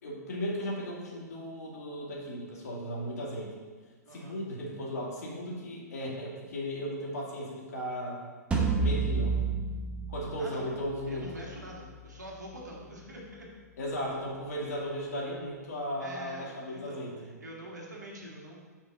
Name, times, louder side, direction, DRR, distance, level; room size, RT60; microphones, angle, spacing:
voice 1, 0.0-3.5 4.1-8.2 8.8-9.4 10.1-11.3 13.8-17.3, equal, 65° left, -3 dB, 2.4 m, -36 dB
voice 2, 4.1-4.4 10.4-10.7 11.1-13.5 16.0-17.1 17.4-18.6, right 1 dB, 80° right, -2 dB, 1.9 m, -45 dB
sound 1, 8.5-13.6, right 4 dB, 10° right, 0.9 m, -33 dB
5.6 x 4.8 x 6.2 m, 1.4 s
figure-of-eight pair, 110°, 9 cm